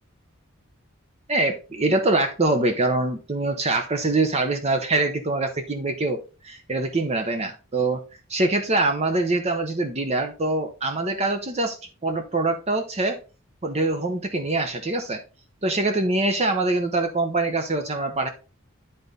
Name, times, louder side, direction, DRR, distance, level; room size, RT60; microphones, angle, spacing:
voice 1, 1.3-8.0 8.3-11.8 12.0-13.2 13.6-15.2 15.6-18.3, right 2 dB, 30° right, 5 dB, 0.7 m, -24 dB
10.0 x 4.0 x 3.7 m, 0.33 s
head